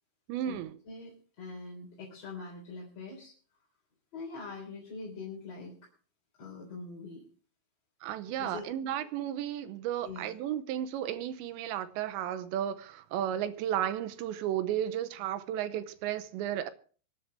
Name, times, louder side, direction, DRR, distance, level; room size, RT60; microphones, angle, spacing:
voice 1, 0.3-0.8 8.0-16.7, right 11 dB, 80° right, 3.0 m, -33 dB
voice 2, 0.9-3.3 4.1-5.8 6.4-7.3 8.4-8.6 10.0-10.3, left 4 dB, 35° left, 4.4 m, -43 dB
25.0 x 10.0 x 3.4 m
omnidirectional pair, 5.3 m